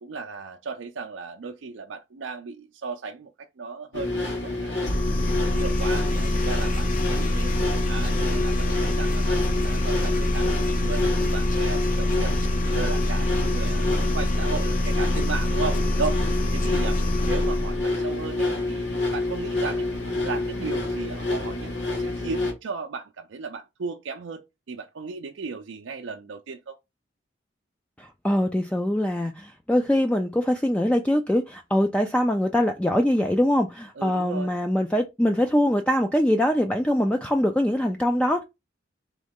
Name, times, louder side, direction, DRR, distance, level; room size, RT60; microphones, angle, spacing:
voice 1, 0.0-5.0 5.5-7.5 7.9-12.4 12.7-19.9 20.2-26.8 34.0-34.5, right 4 dB, 80° right, 0.4 m, -36 dB
sound 1, 3.9-22.5, left 2 dB, 70° left, 1.5 m, -28 dB
sound 2, 4.8-17.8, left 1 dB, 45° left, 0.6 m, -25 dB
voice 2, 28.0-38.4, left 1 dB, 5° left, 0.3 m, -23 dB
3.7 x 3.1 x 3.5 m
head